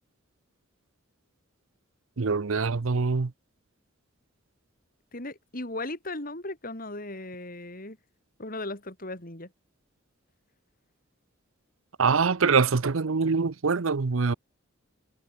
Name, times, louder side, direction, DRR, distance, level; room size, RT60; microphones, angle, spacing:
voice 1, 2.2-3.3 12.0-14.3, right 5 dB, 85° right, 0.7 m, -24 dB
voice 2, 5.1-8.0 8.4-9.5, left 2 dB, 45° left, 4.8 m, -37 dB
head